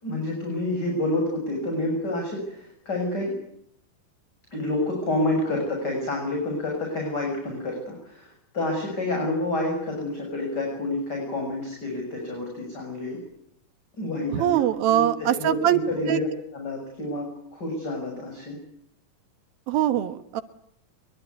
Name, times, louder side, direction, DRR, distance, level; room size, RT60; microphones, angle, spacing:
voice 1, 0.0-3.4 4.5-13.2 14.0-16.3 16.5-18.6, left 1 dB, 25° left, 1 dB, 7.3 m, -29 dB
voice 2, 14.3-15.8 16.1-16.2 19.7-20.4, right 12 dB, 85° right, 10 dB, 3.1 m, -22 dB
24.5 x 23.0 x 9.6 m, 0.73 s
omnidirectional pair, 4.1 m